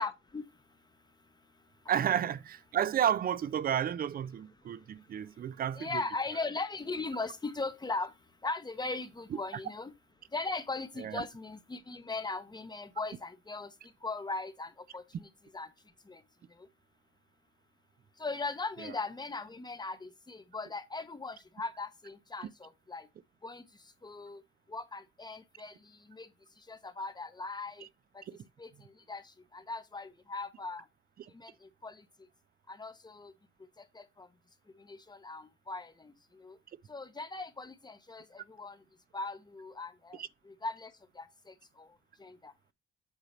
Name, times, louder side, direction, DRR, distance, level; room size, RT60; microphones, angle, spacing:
voice 1, 0.0-1.8 4.8-5.4 5.8-9.9 10.3-15.7 16.0-16.2 16.5-16.7 18.2-23.1 23.4-24.4 24.7-27.9 28.1-28.2 28.6-30.9 31.3-32.3 32.7-33.3 33.8-34.3 34.7-36.6 36.9-38.8 39.1-42.5, left 3 dB, 20° left, 0.9 m, -40 dB
voice 2, 1.9-6.0 9.5-9.6 11.0-11.3 18.8-18.9 28.3-28.4 31.2-31.3 40.2-40.3, right 9 dB, 50° right, 0.5 m, -32 dB
8.1 x 2.8 x 5.1 m
cardioid pair, 90°, 20 cm